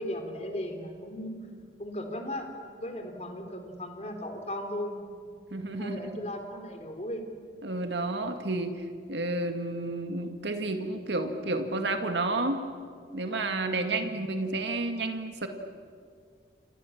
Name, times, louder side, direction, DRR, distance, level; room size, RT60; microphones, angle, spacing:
voice 1, 0.0-1.4 1.8-5.0 5.8-7.2 13.8-14.2, left 1 dB, 40° left, 5 dB, 3.8 m, -37 dB
voice 2, 5.5-6.3 7.6-12.6 13.1-15.5, right 2 dB, 85° right, 6 dB, 2.1 m, -31 dB
30.0 x 27.0 x 7.4 m, 2.2 s
head